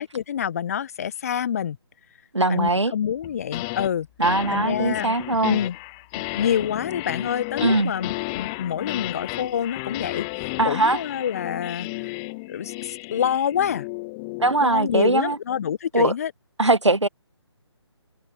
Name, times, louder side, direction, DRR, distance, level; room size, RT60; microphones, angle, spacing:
voice 1, 0.0-1.8 2.5-4.1 4.5-5.1 5.4-5.8 6.1-12.1 12.5-13.9 14.6-16.3, left 9 dB, 30° left, 1.3 m, -27 dB
voice 2, 2.3-2.9 4.2-5.6 7.6-7.9 10.6-11.0 14.4-15.4 15.9-16.1 16.6-17.1, right 2 dB, 80° right, 1.6 m, -21 dB
sound 1, 3.2-3.9 4.2-14.6, left 28 dB, 10° left, 0.4 m, -33 dB
figure-of-eight pair, 145°, 15 cm